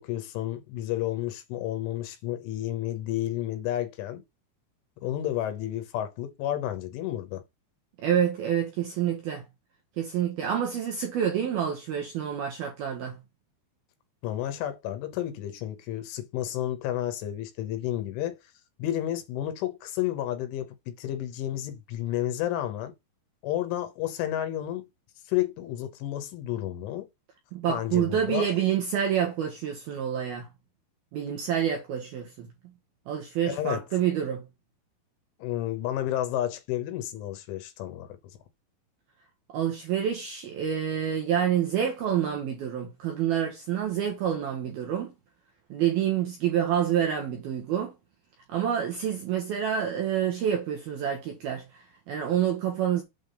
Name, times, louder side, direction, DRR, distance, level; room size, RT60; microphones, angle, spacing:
voice 1, 0.0-4.2 5.0-7.4 14.2-18.4 18.8-22.9 23.4-24.9 25.3-27.1 27.7-28.5 33.5-33.8 35.4-38.2, left 12 dB, 75° left, 3.4 m, -31 dB
voice 2, 8.0-9.4 10.0-13.2 27.5-30.5 31.1-32.5 33.1-34.4 39.5-45.1 45.7-47.9 48.5-53.0, right 9 dB, 70° right, 2.3 m, -28 dB
8.4 x 3.6 x 6.6 m
omnidirectional pair, 6.0 m